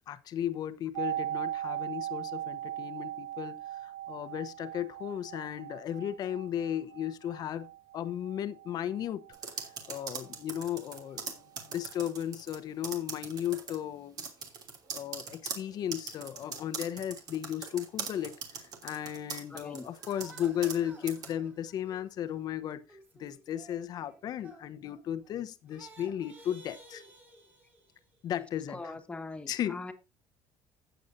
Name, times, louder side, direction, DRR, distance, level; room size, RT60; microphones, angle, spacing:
voice 1, 0.1-7.7 7.9-9.3 9.9-14.3 14.9-22.8 23.1-27.0 28.2-28.8 29.5-29.8, left 10 dB, 50° left, 1.0 m, -35 dB
sound 1, 0.9-10.7 11.0-11.1, right 12 dB, 75° right, 0.4 m, -39 dB
sound 2, 9.3-12.6 12.8-13.8 14.2-20.8 21.1-21.3, right 6 dB, 50° right, 2.9 m, -40 dB
voice 2, 19.5-19.9 28.7-29.9, left 2 dB, 15° left, 1.8 m, -41 dB
sound 3, 20.0-25.4 25.7-28.2, right 2 dB, 20° right, 3.3 m, -55 dB
15.0 x 8.1 x 2.7 m
cardioid pair, 130°, 9 cm